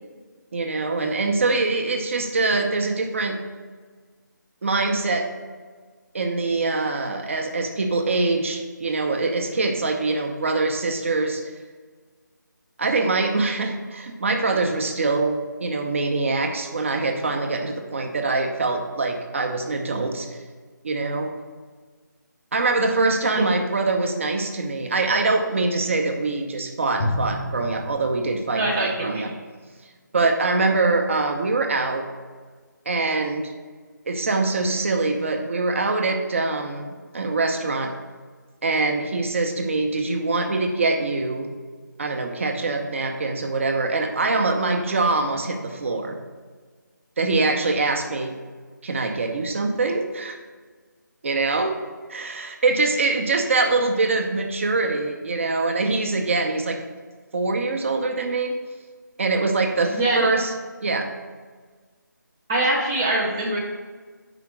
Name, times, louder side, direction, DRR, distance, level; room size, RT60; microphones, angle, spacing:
voice 1, 0.5-3.4 4.6-5.3 6.1-11.4 12.8-20.4 20.8-21.3 22.5-29.3 30.1-32.1 32.9-33.5 34.1-37.9 38.6-41.5 42.0-46.2 47.2-48.3 48.8-50.4 51.2-51.8 52.1-56.8 57.3-58.6 59.2-60.5 60.8-61.1, right 3 dB, 40° right, 4 dB, 0.7 m, -24 dB
Drum, 27.0-29.4, left 1 dB, 35° left, 0.6 m, -31 dB
voice 2, 28.5-29.2 59.9-60.3 62.5-63.6, right 2 dB, 10° right, -6 dB, 0.4 m, -23 dB
5.0 x 4.8 x 5.9 m, 1.5 s
figure-of-eight pair, 165°, 10 cm